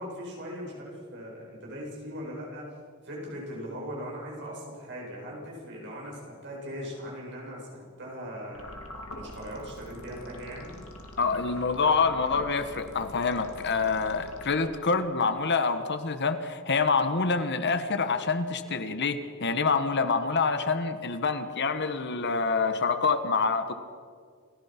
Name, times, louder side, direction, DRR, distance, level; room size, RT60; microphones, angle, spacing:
voice 1, 0.0-2.7 3.0-8.8 9.1-10.8, equal, 55° right, -3 dB, 7.4 m, -39 dB
sound 1, 8.5-15.0, left 1 dB, 70° left, 2.6 m, -44 dB
voice 2, 11.2-23.7, left 4 dB, 55° left, 10 dB, 1.3 m, -26 dB
29.0 x 15.0 x 6.0 m, 2.1 s
head